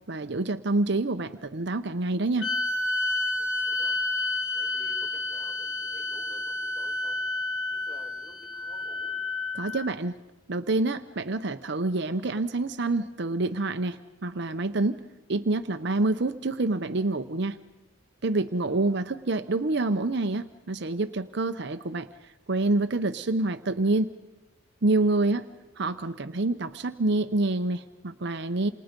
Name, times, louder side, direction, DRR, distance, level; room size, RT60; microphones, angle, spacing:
voice 1, 0.1-2.5 9.5-10.2 10.5-15.0 15.3-17.6 18.2-24.1 24.8-25.4 25.8-28.7, right 2 dB, 55° right, 9 dB, 0.8 m, -27 dB
sound 1, 2.4-9.9, left 2 dB, 75° left, 1.3 m, -30 dB
voice 2, 3.4-4.0 4.5-7.2 7.7-9.2 18.5-19.0 25.1-25.7, equal, 10° left, -2 dB, 7.6 m, -53 dB
28.5 x 28.0 x 5.3 m, 1.1 s
head